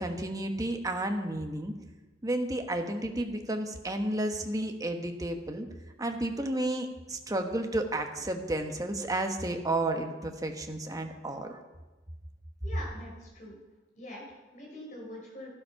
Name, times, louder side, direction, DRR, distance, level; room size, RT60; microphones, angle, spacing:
voice 1, 0.0-1.7 2.2-5.7 6.0-11.6, right 1 dB, 20° right, 4 dB, 1.2 m, -32 dB
voice 2, 12.6-13.6 14.0-15.5, left 1 dB, 45° left, -1 dB, 5.3 m, -44 dB
12.5 x 12.0 x 5.7 m, 1.1 s
head